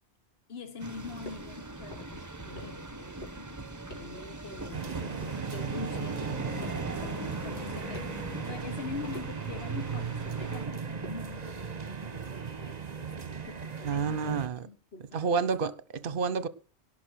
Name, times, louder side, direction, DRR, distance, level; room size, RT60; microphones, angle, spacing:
voice 1, 0.5-15.5, left 5 dB, 65° left, 1.4 m, -45 dB
sound 1, 0.8-10.7, right 1 dB, 15° right, 1.0 m, -41 dB
sound 2, 1.3-1.5 1.8-2.2 2.6-2.9 3.2-3.5 3.9-4.2 4.5-5.5 5.9-6.3 6.6-6.9 7.3-7.6 7.9-8.2 8.5-8.8 9.1-9.4 9.8-10.1 10.4-10.7 11.0-11.3, left 1 dB, 45° left, 5.2 m, -47 dB
sound 3, 4.7-14.5, right 6 dB, 40° right, 1.2 m, -37 dB
voice 2, 13.8-14.7 15.1-16.5, right 5 dB, 55° right, 1.0 m, -29 dB
17.5 x 6.1 x 6.3 m
omnidirectional pair, 1.1 m